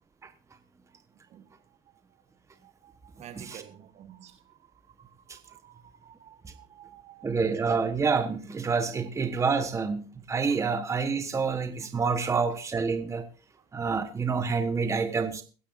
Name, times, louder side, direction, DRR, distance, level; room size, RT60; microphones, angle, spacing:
voice 1, 2.6-4.6 5.0-7.3, right 10 dB, 45° right, 1.5 m, -51 dB
voice 2, 7.2-13.2 13.7-15.4, right 5 dB, 20° right, 1.2 m, -28 dB
22.5 x 10.0 x 2.6 m
supercardioid pair, 105°, 16 cm